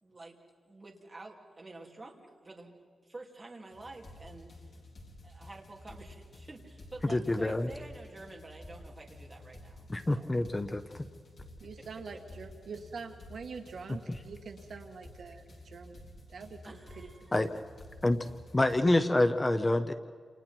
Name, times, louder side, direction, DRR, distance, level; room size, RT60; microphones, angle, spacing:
voice 1, 0.0-0.4 0.7-2.8 3.0-4.8 5.2-10.3 11.8-11.9 12.1-12.2 16.6-17.3, right 2 dB, 20° right, -1 dB, 3.0 m, -49 dB
sound 1, 3.7-18.8, left 1 dB, 50° left, 4.4 m, -52 dB
voice 2, 7.0-7.7 9.9-11.0 14.1-14.2 17.3-17.5 18.0-18.2 18.5-19.9, left 1 dB, 15° left, 9 dB, 0.7 m, -27 dB
voice 3, 11.6-16.6 17.0-17.3, right 5 dB, 60° right, 5 dB, 1.7 m, -45 dB
29.5 x 28.0 x 4.5 m, 2.1 s
wide cardioid pair, 180°, 0 cm